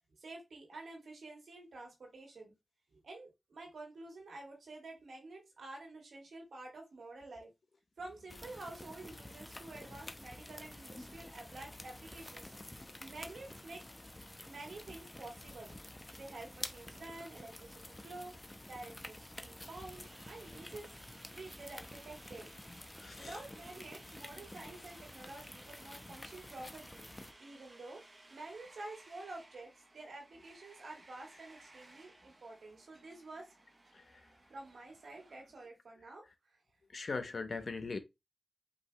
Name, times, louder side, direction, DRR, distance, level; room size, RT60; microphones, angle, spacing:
voice 1, 0.1-2.5 2.9-7.5 8.0-13.8 14.4-15.7 16.1-20.9 21.3-22.5 23.1-27.1 27.4-33.5 34.5-36.6, right 2 dB, 90° right, 2.1 m, -50 dB
sound 1, 8.3-27.3, left 1 dB, 25° left, 0.8 m, -50 dB
sound 2, 19.6-35.7, right 2 dB, 45° right, 1.2 m, -60 dB
voice 2, 23.0-23.4 33.9-34.2 36.9-38.0, left 4 dB, 65° left, 0.9 m, -40 dB
5.3 x 2.9 x 3.2 m
cardioid pair, 45°, 0 cm